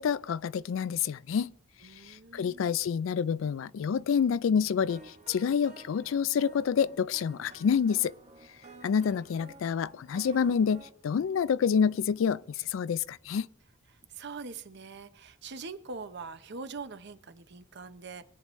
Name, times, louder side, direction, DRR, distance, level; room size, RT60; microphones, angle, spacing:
voice 1, 0.0-1.5 2.0-8.1 8.8-13.5, left 7 dB, 75° left, 0.3 m, -28 dB
voice 2, 1.8-2.7 13.9-18.3, right 4 dB, 60° right, 0.8 m, -43 dB
sound 1, 4.9-10.9, right 2 dB, 35° right, 1.2 m, -52 dB
23.5 x 9.0 x 3.1 m
head